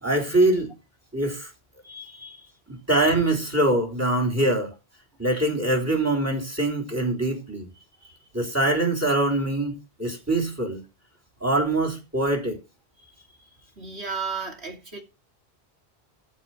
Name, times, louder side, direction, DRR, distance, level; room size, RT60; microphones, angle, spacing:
voice 1, 0.0-0.7 1.1-1.5 2.7-4.7 5.2-7.7 8.3-9.7 10.0-10.8 11.4-12.6, right 2 dB, 15° right, 3.8 m, -23 dB
voice 2, 1.8-2.5 7.8-8.2 13.0-13.1 13.8-15.0, right 4 dB, 80° right, 3.2 m, -35 dB
14.0 x 5.3 x 6.0 m
omnidirectional pair, 1.1 m